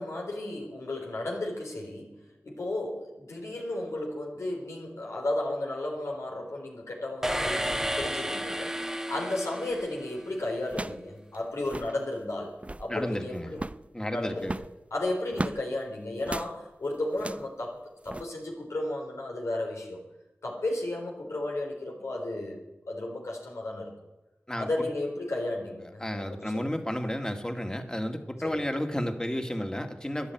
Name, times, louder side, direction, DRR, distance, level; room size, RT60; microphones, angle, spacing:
voice 1, 0.0-2.1 2.4-8.8 9.1-13.6 14.1-14.5 14.9-20.0 20.4-23.9 24.6-26.8 28.4-28.7, left 1 dB, 85° left, 0 dB, 3.7 m, -34 dB
sound 1, 7.2-10.4, equal, 10° right, 1.1 m, -32 dB
sound 2, 9.7-10.0 10.7-11.1 11.3-11.4 11.6-12.0 12.5-12.9 13.5-13.9 14.4-15.6 16.2-16.5 17.1-17.5 18.0-18.2, right 2 dB, 25° right, 0.6 m, -36 dB
voice 2, 12.9-13.5 13.9-14.5 24.5-24.7 26.0-30.3, equal, 15° left, 5 dB, 2.0 m, -32 dB
12.5 x 10.5 x 9.3 m, 0.99 s
cardioid pair, 40°, 5 cm